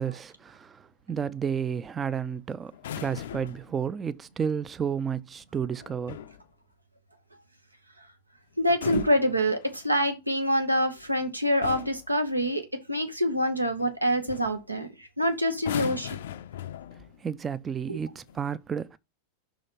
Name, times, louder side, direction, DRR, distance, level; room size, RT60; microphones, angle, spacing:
voice 1, 0.0-2.7 3.0-6.2 17.2-19.0, right 7 dB, 20° right, 0.4 m, -31 dB
sound 1, 2.7-3.7 5.8-6.4 8.6-10.0 11.0-11.2 11.6-12.1 13.8-14.0 14.3-14.6 15.5-17.2 18.1-18.4, left 10 dB, 60° left, 0.4 m, -38 dB
voice 2, 8.6-16.2 17.9-18.0, equal, 85° right, 1.0 m, -26 dB
5.7 x 3.8 x 5.2 m
figure-of-eight pair, 90°, 0 cm